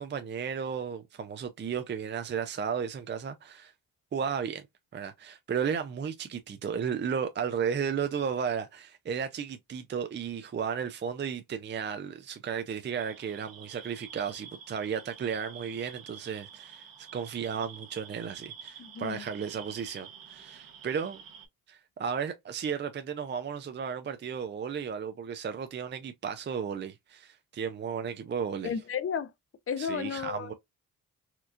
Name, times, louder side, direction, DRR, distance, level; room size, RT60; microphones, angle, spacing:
voice 1, 0.0-3.7 4.1-4.6 4.9-21.2 21.7-28.7 29.8-30.5, right 7 dB, 30° right, 0.5 m, -34 dB
sound 1, 12.9-21.5, right 7 dB, 75° right, 1.1 m, -48 dB
voice 2, 18.8-19.2 28.6-29.3 29.7-30.5, left 7 dB, 40° left, 0.6 m, -33 dB
4.4 x 2.3 x 2.5 m
cardioid pair, 80°, 34 cm